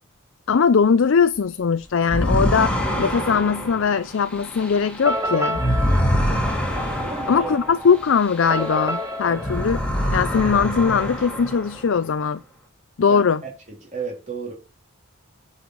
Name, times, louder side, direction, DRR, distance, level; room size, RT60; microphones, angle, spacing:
voice 1, 0.5-5.6 7.3-9.8 10.1-12.4 13.0-13.4, left 6 dB, 60° left, 0.4 m, -20 dB
sound 1, 2.0-9.0 9.3-12.0, equal, 5° left, 2.1 m, -25 dB
sound 2, 5.0-10.8, equal, 15° right, 1.5 m, -30 dB
voice 2, 7.0-7.5 9.3-9.4 13.1-13.2 13.9-14.5, right 5 dB, 35° right, 3.8 m, -32 dB
9.8 x 5.6 x 4.5 m
head